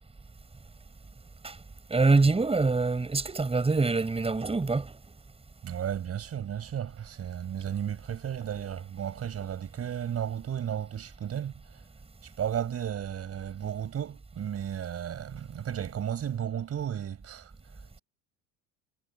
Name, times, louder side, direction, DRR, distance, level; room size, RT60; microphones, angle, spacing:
voice 1, 1.9-4.9, right 3 dB, 15° right, 5.5 m, -25 dB
voice 2, 5.6-11.8 12.2-17.5, right 9 dB, 40° right, 5.3 m, -34 dB
supercardioid pair, 90°, 35 cm